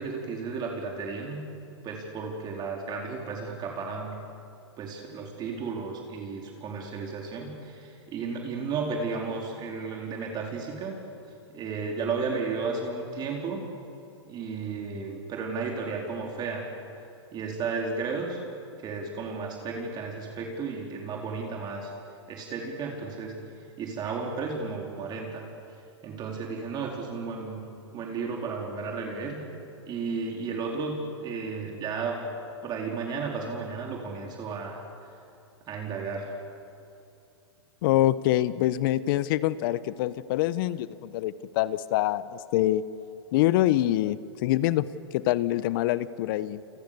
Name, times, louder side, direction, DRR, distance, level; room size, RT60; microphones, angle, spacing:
voice 1, 0.0-1.4 1.8-4.2 4.8-11.0 11.5-13.6 14.3-16.7 17.3-18.4 18.8-21.9 22.3-23.4 23.8-25.5 26.0-27.6 27.9-29.4 29.9-32.2 32.6-34.8 35.7-36.3, right 4 dB, 30° right, 0 dB, 4.3 m, -33 dB
voice 2, 37.8-42.8 43.3-46.6, left 14 dB, 50° left, 16 dB, 1.0 m, -25 dB
29.5 x 28.5 x 6.9 m, 2.7 s
hypercardioid pair, 115°, 15 cm